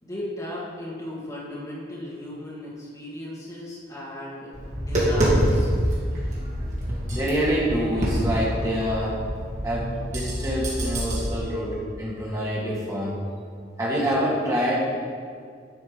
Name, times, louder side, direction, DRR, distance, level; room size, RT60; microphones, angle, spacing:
voice 1, 0.0-5.7, left 1 dB, 20° left, -7 dB, 2.5 m, -36 dB
Tap, 4.5-11.2, equal, 40° right, 2.4 m, -26 dB
voice 2, 7.1-9.2 9.6-13.2 13.8-14.8, equal, 15° right, -6 dB, 2.2 m, -26 dB
11.5 x 5.8 x 5.3 m, 2.1 s
head